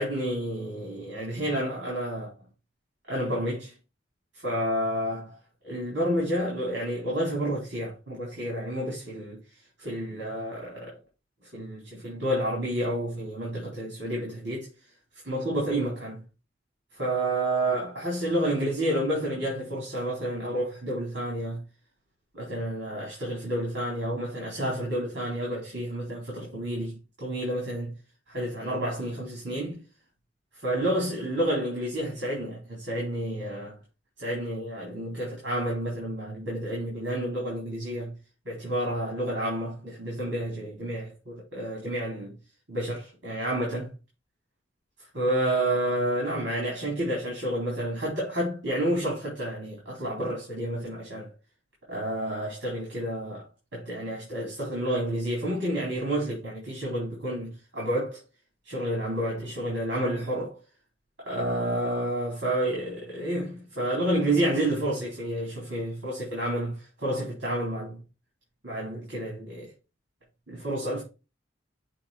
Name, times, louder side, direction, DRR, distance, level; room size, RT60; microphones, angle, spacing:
voice 1, 0.0-2.3 3.1-3.7 4.3-5.4 5.6-9.4 9.8-11.0 11.4-14.7 15.2-16.2 16.9-21.6 22.3-27.9 28.3-29.8 30.5-33.8 34.2-38.2 38.5-42.4 42.7-44.0 45.1-51.3 51.9-58.2 58.6-60.6 61.2-68.0 68.6-69.7 70.5-71.0, right 1 dB, 75° right, 3.8 m, -30 dB
7.6 x 3.3 x 4.9 m
head